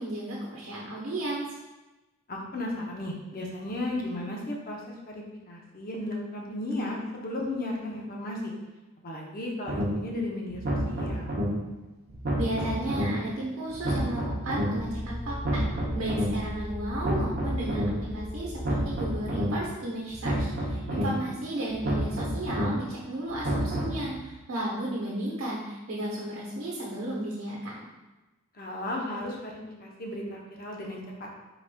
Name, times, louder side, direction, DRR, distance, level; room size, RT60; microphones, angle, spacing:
voice 1, 0.0-1.4 12.4-15.6 15.9-27.8, right 1 dB, 75° right, -5 dB, 0.9 m, -34 dB
voice 2, 2.3-8.5 9.0-11.3 20.8-21.2 28.5-31.3, left 1 dB, 45° left, -1 dB, 0.7 m, -35 dB
sound 1, 9.7-9.8 10.5-11.4 12.1-13.0 13.7-14.6 15.3-16.2 16.9-17.8 18.5-19.4 20.1-21.0 21.7-22.6 23.3-24.0, right 1 dB, 45° right, 0.7 m, -29 dB
sound 2, 14.8-19.7, equal, 80° left, 0.9 m, -38 dB
4.8 x 4.0 x 2.2 m, 1.1 s
head